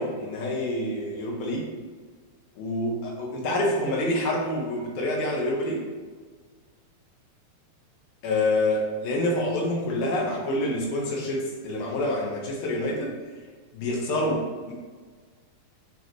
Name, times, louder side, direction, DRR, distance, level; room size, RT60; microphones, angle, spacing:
voice 1, 0.0-1.7 2.6-5.8 8.2-13.1 13.7-14.7, left 1 dB, 90° left, -2 dB, 3.2 m, -27 dB
8.9 x 4.5 x 3.2 m, 1.5 s
omnidirectional pair, 4.2 m